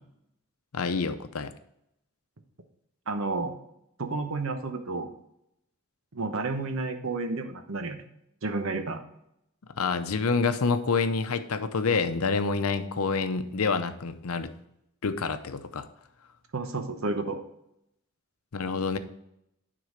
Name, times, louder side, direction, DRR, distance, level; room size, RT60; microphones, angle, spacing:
voice 1, 0.7-1.5 9.8-14.5 15.0-15.9 18.5-19.0, left 4 dB, 85° left, 10 dB, 0.7 m, -27 dB
voice 2, 3.1-3.5 4.0-5.1 6.1-8.0 8.4-9.0 16.5-17.4, right 3 dB, 70° right, 6 dB, 1.0 m, -31 dB
9.5 x 3.9 x 5.1 m, 0.79 s
head